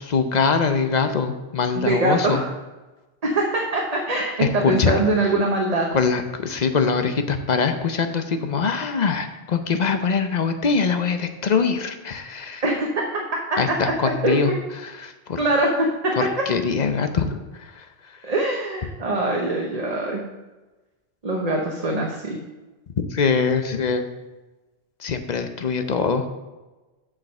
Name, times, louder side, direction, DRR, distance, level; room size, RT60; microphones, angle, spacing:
voice 1, 0.0-2.4 4.4-5.0 5.9-12.6 13.6-14.5 14.8-15.4 16.5-17.4 17.8-17.9 23.1-24.1 25.0-26.3, left 5 dB, 45° left, 8 dB, 0.7 m, -23 dB
voice 2, 1.7-2.5 3.2-5.9 12.6-13.0 13.7-13.8 14.2-14.6 15.4-16.4 18.2-20.2 21.2-22.4, right 2 dB, 40° right, -1 dB, 1.0 m, -23 dB
7.5 x 5.0 x 6.4 m, 1.1 s
omnidirectional pair, 1.1 m